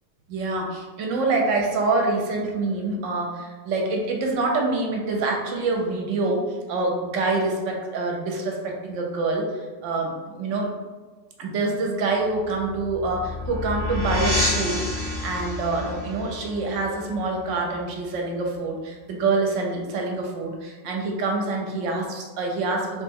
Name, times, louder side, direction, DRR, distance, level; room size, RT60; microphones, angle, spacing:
voice 1, 0.3-10.7 11.4-23.0, right 3 dB, 75° right, 0 dB, 0.9 m, -26 dB
sound 1, 12.3-17.7, left 2 dB, 25° left, 0.9 m, -29 dB
2.9 x 2.1 x 3.5 m, 1.4 s
omnidirectional pair, 1.3 m